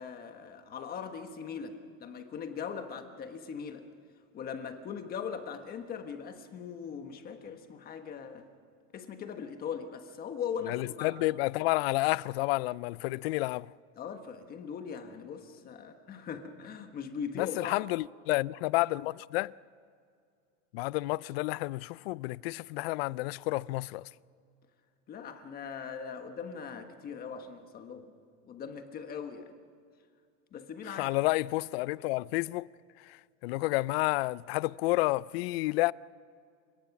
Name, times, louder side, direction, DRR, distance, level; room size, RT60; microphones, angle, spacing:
voice 1, 0.0-3.8 4.3-8.5 8.9-11.2 14.0-17.7 25.1-28.1 28.5-29.5 30.5-31.1, left 6 dB, 25° left, 1.3 m, -40 dB
voice 2, 10.6-13.7 17.4-19.6 20.7-24.1 30.9-32.7 33.4-35.9, left 20 dB, 55° left, 0.5 m, -30 dB
30.0 x 18.0 x 6.0 m
supercardioid pair, 160°, 36 cm